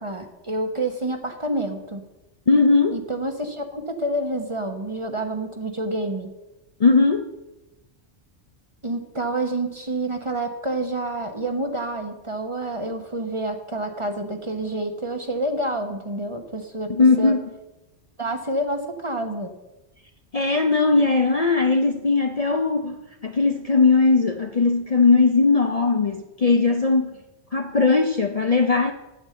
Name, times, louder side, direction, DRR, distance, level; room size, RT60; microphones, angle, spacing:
voice 1, 0.0-2.0 2.9-6.3 8.8-17.3 18.2-19.6, right 1 dB, 30° right, 6 dB, 1.0 m, -28 dB
voice 2, 2.5-3.0 6.8-7.2 16.9-17.5 20.3-23.0 23.2-27.1 27.5-28.9, left 4 dB, 40° left, 5 dB, 0.6 m, -19 dB
8.7 x 8.0 x 7.7 m, 0.98 s
omnidirectional pair, 1.2 m